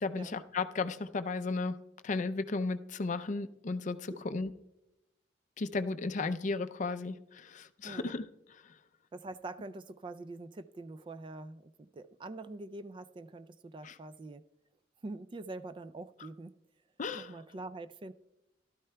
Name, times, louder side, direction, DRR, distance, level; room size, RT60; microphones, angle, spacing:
voice 1, 0.0-4.5 5.6-8.2 8.6-8.7 13.8-14.0 17.0-17.3, left 3 dB, 40° left, 0.4 m, -35 dB
voice 2, 9.1-14.4 15.0-16.5 17.1-18.1, right 2 dB, 25° right, 0.3 m, -44 dB
15.5 x 12.5 x 2.2 m
head